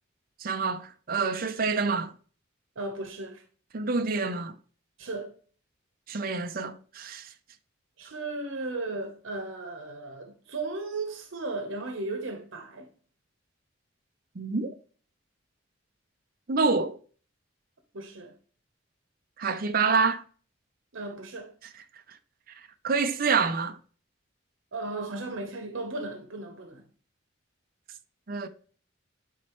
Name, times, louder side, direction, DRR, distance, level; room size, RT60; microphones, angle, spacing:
voice 1, 0.4-2.1 3.7-4.5 6.1-7.3 14.4-14.7 16.5-17.0 19.4-20.2 22.1-22.2 22.8-23.8 28.3-28.5, right 4 dB, 50° right, 0.6 m, -27 dB
voice 2, 2.8-3.4 5.0-5.3 8.0-12.9 17.9-18.4 20.9-21.5 24.7-26.8, right 2 dB, 80° right, 0.9 m, -36 dB
9.4 x 4.3 x 3.0 m
head